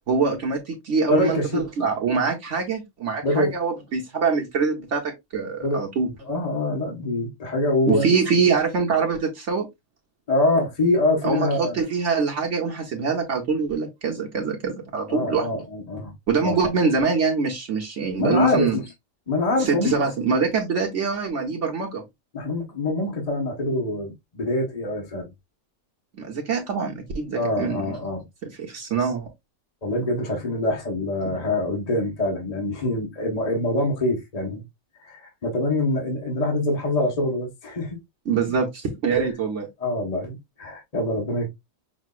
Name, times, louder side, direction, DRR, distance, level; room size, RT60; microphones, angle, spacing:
voice 1, 0.1-6.1 7.9-9.7 11.2-15.5 16.3-18.8 19.6-22.0 26.1-28.0 28.4-29.3 31.3-31.4 38.3-39.7, right 5 dB, 65° right, 1.2 m, -24 dB
voice 2, 1.1-1.6 3.2-3.6 5.6-5.8 6.3-8.4 10.3-11.8 15.1-16.1 16.4-16.7 18.2-18.8 19.3-20.0 22.3-25.3 27.3-28.2 29.8-34.6 35.0-38.0 39.8-41.5, left 2 dB, 30° left, 1.3 m, -25 dB
6.2 x 2.7 x 2.4 m
omnidirectional pair, 1.4 m